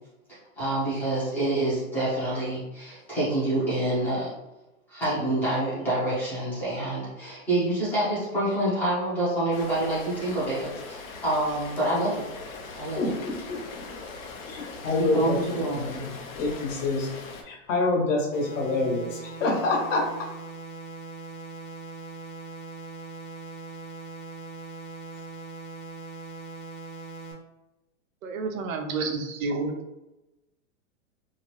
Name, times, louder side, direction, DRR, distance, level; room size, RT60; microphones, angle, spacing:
voice 1, 0.6-4.3 4.9-12.3 12.8-13.1 15.0-15.9, right 1 dB, 5° left, -11 dB, 0.4 m, -27 dB
Rain, 9.5-17.4, left 4 dB, 80° left, 0.7 m, -41 dB
voice 2, 13.0-13.9 14.5-16.1 16.4-17.1 17.4-20.1, left 2 dB, 65° left, -1 dB, 1.1 m, -27 dB
sound 1, 18.3-27.3, right 3 dB, 40° left, 0.8 m, -41 dB
voice 3, 28.2-29.7, right 3 dB, 80° right, 5 dB, 0.7 m, -29 dB
2.8 x 2.1 x 3.0 m, 0.99 s
supercardioid pair, 160°, 40 cm